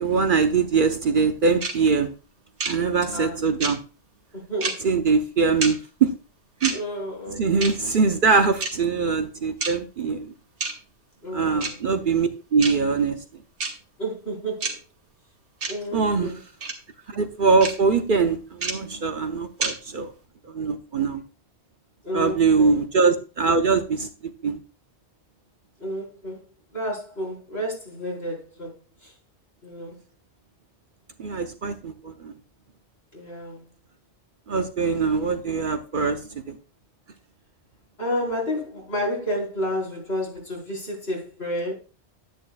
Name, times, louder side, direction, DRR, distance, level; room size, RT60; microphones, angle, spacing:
voice 1, 0.0-2.1 2.6-3.8 4.8-6.1 6.6-6.8 7.3-10.3 11.3-13.2 15.9-16.3 17.1-20.1 20.5-21.2 22.1-24.1 24.4-24.6 31.2-32.3 34.5-36.6, right 4 dB, 55° right, 0.8 m, -22 dB
sound 1, 1.6-1.7 2.6-2.7 3.6-3.7 4.6-4.7 5.6-5.7 6.6-6.7 7.6-7.7 8.6-8.7 9.6-9.7 10.6-10.7 11.6-11.7 12.6-12.7 13.6-13.7 14.6-14.7 15.6-15.7 16.6-16.7 17.6-17.7 18.6-18.7 19.6-19.7, right 3 dB, 75° right, 2.0 m, -27 dB
voice 2, 4.3-4.9 6.7-7.8 11.2-11.7 14.0-14.8 15.7-16.4 22.0-22.7 25.8-26.4 26.7-29.1 29.6-30.0 33.1-33.6 38.0-41.7, equal, 65° left, 4.7 m, -31 dB
10.5 x 10.0 x 2.3 m
omnidirectional pair, 1.2 m